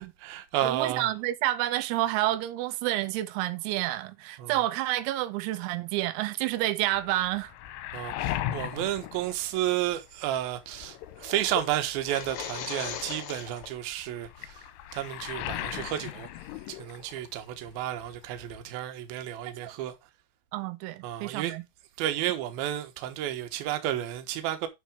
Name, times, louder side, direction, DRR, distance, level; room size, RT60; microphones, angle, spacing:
voice 1, 0.0-1.1 4.4-4.6 7.9-20.0 21.0-21.5 22.0-24.7, right 12 dB, 75° right, 2.3 m, -32 dB
voice 2, 0.6-7.5 19.5-19.7 20.5-21.6, right 15 dB, 90° right, 3.6 m, -29 dB
Waves surf, 6.9-10.1 10.5-17.4 17.7-18.6, left 13 dB, 80° left, 3.1 m, -38 dB
sound 1, 11.9-13.7, left 8 dB, 65° left, 2.3 m, -38 dB
8.9 x 4.9 x 5.0 m
omnidirectional pair, 5.9 m